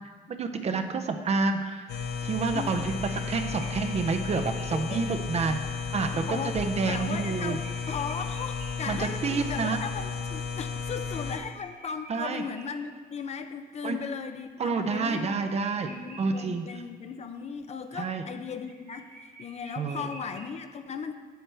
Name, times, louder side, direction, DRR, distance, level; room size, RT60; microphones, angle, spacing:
voice 1, 0.3-1.8 2.2-5.6 5.9-6.2 6.5-7.6 8.9-9.8 12.1-12.4 13.8-14.0 14.6-15.9 16.2-16.8 17.9-18.2 19.8-20.1, right 4 dB, 40° right, 6 dB, 0.6 m, -29 dB
sound 1, 1.9-11.4, left 5 dB, 85° left, 0.8 m, -34 dB
sound 2, 2.8-5.1 5.7-5.8 6.1-6.2 6.5-13.4 13.8-16.7 17.0-17.1 17.3-20.6, right 2 dB, 60° right, 1.2 m, -51 dB
voice 2, 4.7-5.0 6.1-6.6 6.9-19.1 19.4-21.2, left 6 dB, 45° left, 8 dB, 0.5 m, -37 dB
7.7 x 7.6 x 3.3 m, 1.5 s
cardioid pair, 125°, 16 cm